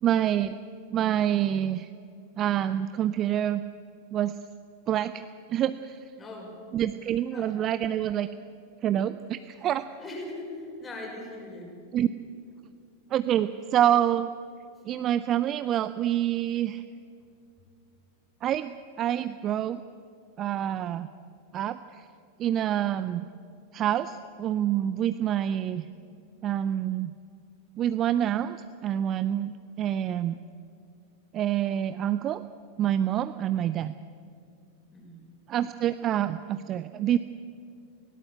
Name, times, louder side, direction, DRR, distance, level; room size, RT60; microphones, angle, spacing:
voice 1, 0.0-0.6 0.9-1.9 2.4-3.6 4.1-4.4 4.9-5.2 5.5-6.0 6.7-8.3 8.8-9.9 11.9-12.1 13.1-14.3 14.9-16.8 18.4-19.8 20.4-21.1 21.5-22.0 22.4-23.3 23.7-25.9 26.4-27.1 27.8-30.4 31.3-32.4 32.8-33.9 35.5-37.2, right 11 dB, 30° right, 13 dB, 0.5 m, -27 dB
voice 2, 6.2-6.6 7.3-7.5 10.0-11.7 34.9-35.2, left 2 dB, 20° left, -1 dB, 5.7 m, -40 dB
19.5 x 17.0 x 8.4 m, 2.4 s
figure-of-eight pair, 90°, 0 cm